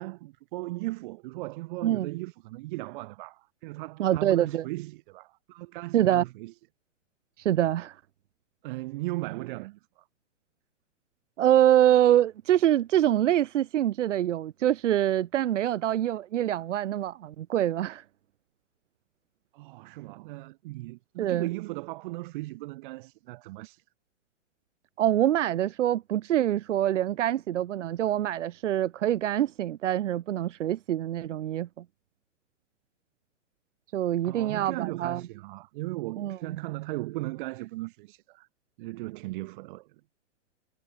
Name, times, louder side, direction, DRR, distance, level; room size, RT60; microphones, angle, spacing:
voice 1, 0.0-6.5 8.6-10.0 19.5-23.8 34.2-38.5 38.8-39.9, right 20 dB, 45° right, 8.0 m, -37 dB
voice 2, 4.0-4.7 5.9-6.2 7.4-7.9 11.4-18.0 21.2-21.5 25.0-31.8 33.9-35.2 36.2-36.6, right 12 dB, 80° right, 1.0 m, -25 dB
hypercardioid pair, 155°, 36 cm